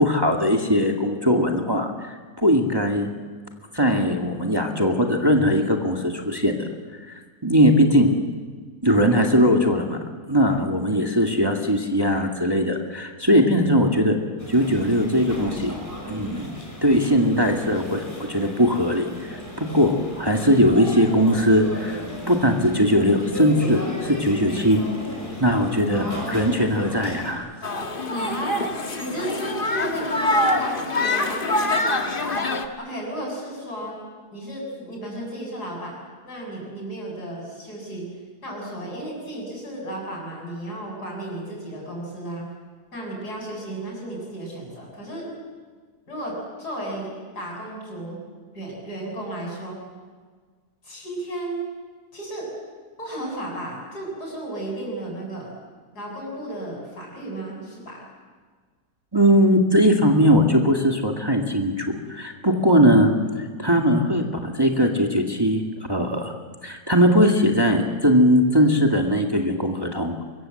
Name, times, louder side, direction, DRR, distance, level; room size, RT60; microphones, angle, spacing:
voice 1, 0.0-3.1 3.7-6.7 7.4-8.1 8.8-10.0 10.3-14.2 14.5-15.7 16.1-16.5 16.8-22.0 22.3-24.8 25.4-27.5 59.1-65.6 65.9-66.3 66.6-70.1, equal, 15° right, 2 dB, 2.0 m, -20 dB
sound 1, 14.4-27.3, equal, 10° left, 5.8 m, -35 dB
sound 2, 27.6-32.7, left 2 dB, 35° left, 1.7 m, -24 dB
voice 2, 28.1-28.7 29.0-31.8 32.2-32.4 32.8-34.0 34.3-36.0 36.2-38.0 38.4-42.4 42.9-45.3 46.1-48.2 48.5-49.8 50.8-51.6 52.1-52.5 53.0-55.5 55.9-58.0, right 1 dB, 80° left, -1 dB, 8.3 m, -33 dB
24.5 x 22.5 x 7.8 m, 1.6 s
omnidirectional pair, 1.7 m